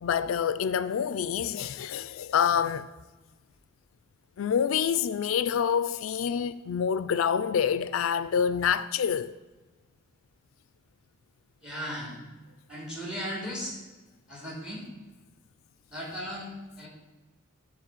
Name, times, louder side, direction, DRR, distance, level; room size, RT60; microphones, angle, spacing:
voice 1, 0.0-2.9 4.4-9.3, left 7 dB, 75° left, 0.4 m, -27 dB
voice 2, 11.6-12.2 12.7-13.8 14.3-14.9 15.9-16.9, equal, 5° right, 3.1 m, -36 dB
12.0 x 4.1 x 7.4 m
head